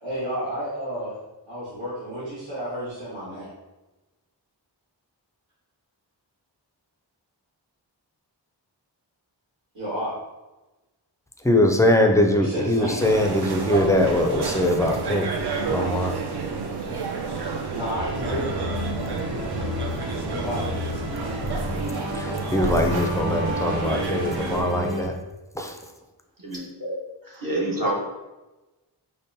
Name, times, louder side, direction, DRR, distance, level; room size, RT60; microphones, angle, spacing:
voice 1, 0.0-1.2 1.5-3.5 9.7-10.1 12.4-13.0 17.7-18.5 20.3-20.7, right 1 dB, 85° right, -12 dB, 1.5 m, -31 dB
voice 2, 11.4-15.3 15.7-16.2 22.1-25.1 25.6-25.7, left 1 dB, 10° left, 2 dB, 0.3 m, -22 dB
sound 1, 13.0-24.6, right 4 dB, 65° right, 0.6 m, -30 dB
sound 2, 18.0-25.0, equal, 25° right, 1.1 m, -31 dB
voice 3, 26.4-26.9 27.2-27.9, right 1 dB, 50° right, -5 dB, 1.1 m, -28 dB
5.2 x 2.1 x 2.7 m, 1.1 s
wide cardioid pair, 75°, 42 cm